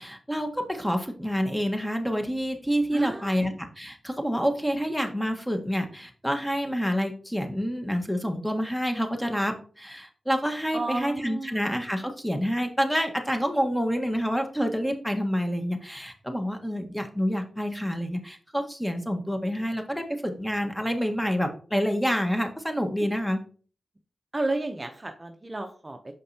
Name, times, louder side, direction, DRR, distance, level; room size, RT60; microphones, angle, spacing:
voice 1, 0.0-23.4, equal, 5° left, 5 dB, 1.4 m, -28 dB
voice 2, 2.9-3.3 10.7-11.6 24.3-26.1, right 2 dB, 30° right, 5 dB, 0.7 m, -32 dB
6.5 x 5.2 x 2.8 m, 0.41 s
cardioid pair, 40°, 0 cm